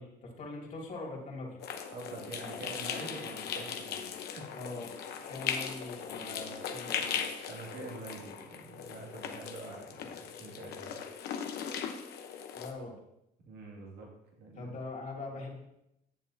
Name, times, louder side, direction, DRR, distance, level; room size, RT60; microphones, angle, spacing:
voice 1, 0.0-1.6 4.5-4.9 5.3-7.3 12.5-13.0 14.5-15.6, left 2 dB, 45° left, -1 dB, 2.6 m, -42 dB
sound 1, 1.6-12.7, left 7 dB, 75° left, 0.9 m, -39 dB
voice 2, 1.9-4.0 4.4-4.5 7.5-11.0 13.4-14.1 14.4-14.7, right 3 dB, 75° right, -1 dB, 2.2 m, -45 dB
10.5 x 7.2 x 2.8 m, 0.83 s
cardioid pair, 110°, 17 cm